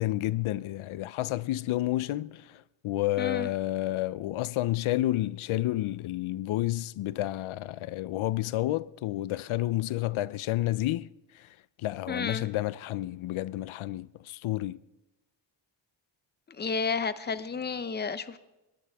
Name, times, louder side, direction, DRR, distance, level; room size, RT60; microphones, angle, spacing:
voice 1, 0.0-11.1 11.3-11.5 11.8-14.8, left 15 dB, 85° left, 0.6 m, -30 dB
voice 2, 3.2-3.5 12.1-12.5 16.6-18.4, left 5 dB, 20° left, 0.7 m, -31 dB
22.5 x 18.5 x 3.5 m
wide cardioid pair, 140°, 47 cm